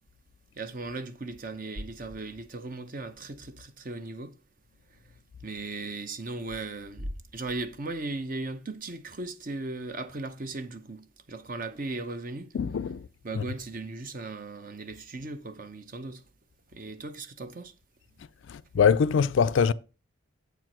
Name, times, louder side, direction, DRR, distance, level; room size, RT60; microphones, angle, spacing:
voice 1, 0.6-4.4 5.4-12.5 13.2-16.2 16.7-17.7, right 3 dB, 40° right, 0.7 m, -37 dB
sound 1, 1.7-2.7 3.1-3.2 6.3-8.4, equal, 70° right, 1.0 m, -43 dB
voice 2, 12.5-13.0 13.3-13.4 18.5-19.7, left 6 dB, 65° left, 0.3 m, -23 dB
8.1 x 4.7 x 5.9 m
head